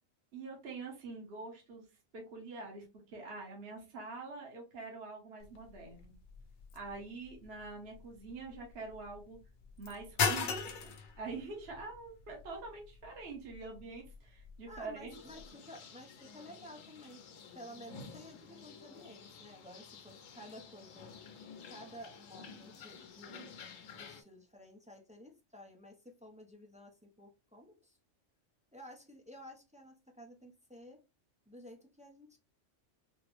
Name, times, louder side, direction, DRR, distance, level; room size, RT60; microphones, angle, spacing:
voice 1, 0.3-1.9 2.1-6.1 6.7-9.4 9.8-15.2, right 3 dB, 55° right, 0 dB, 1.2 m, -45 dB
sound 1, 5.4-15.5, left 5 dB, 55° left, 0.6 m, -41 dB
voice 2, 14.7-17.2 17.5-21.1 21.7-28.0 28.7-31.0 31.5-32.4, equal, 10° right, 1 dB, 0.3 m, -53 dB
sound 2, 15.1-24.2, left 5 dB, 85° left, 1.0 m, -52 dB
4.2 x 2.0 x 3.0 m, 0.27 s
omnidirectional pair, 1.3 m